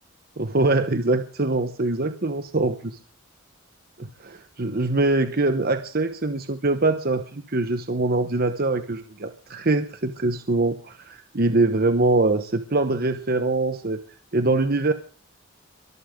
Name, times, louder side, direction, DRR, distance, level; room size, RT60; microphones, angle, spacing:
voice 1, 0.4-3.0 4.0-14.0 14.3-14.9, right 2 dB, 45° right, 9 dB, 1.1 m, -23 dB
23.5 x 13.0 x 3.8 m, 0.40 s
head